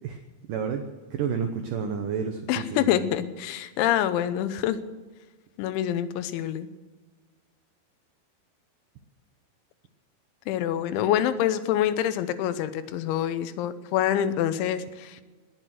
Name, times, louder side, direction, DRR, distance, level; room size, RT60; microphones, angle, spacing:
voice 1, 0.5-3.1, right 6 dB, 85° right, 6 dB, 1.8 m, -30 dB
voice 2, 2.5-4.8 5.6-6.7 10.5-15.2, left 11 dB, 85° left, 12 dB, 3.2 m, -26 dB
19.5 x 8.3 x 7.7 m, 1.3 s
omnidirectional pair, 5.3 m